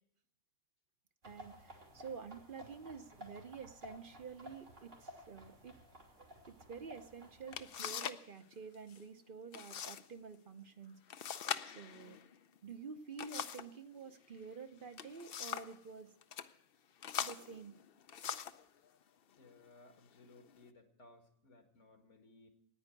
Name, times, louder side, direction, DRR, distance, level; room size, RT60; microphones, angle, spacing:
voice 1, 1.2-5.7 6.2-11.2 11.7-12.2 12.6-16.1 17.2-17.7, right 5 dB, 50° right, 9 dB, 0.9 m, -49 dB
sound 1, 1.2-7.8, left 1 dB, 85° right, 3.5 m, -55 dB
sound 2, 7.0-7.1 7.5-8.3 8.5-9.0 9.5-10.0 10.3-10.4 11.1-13.8 14.7-15.8 16.2-16.5 17.0-18.7 19.4-19.6 20.1-20.6, left 8 dB, 55° left, 0.8 m, -42 dB
voice 2, 19.4-22.5, left 2 dB, 75° left, 5 dB, 2.2 m, -61 dB
9.7 x 9.5 x 9.6 m, 0.72 s
omnidirectional pair, 1.2 m